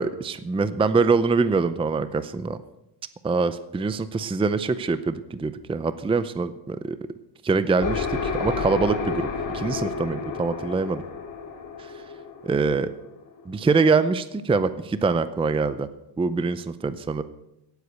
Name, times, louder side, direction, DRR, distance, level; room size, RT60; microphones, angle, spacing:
voice 1, 0.0-2.6 3.2-7.0 7.4-9.3 9.5-11.0 12.4-12.9 13.5-15.9 16.2-17.2, right 4 dB, 15° right, 13 dB, 0.6 m, -24 dB
sound 1, 7.8-13.4, left 5 dB, 45° left, 4.2 m, -31 dB
17.5 x 8.2 x 8.3 m, 0.86 s
cardioid pair, 145°, 43 cm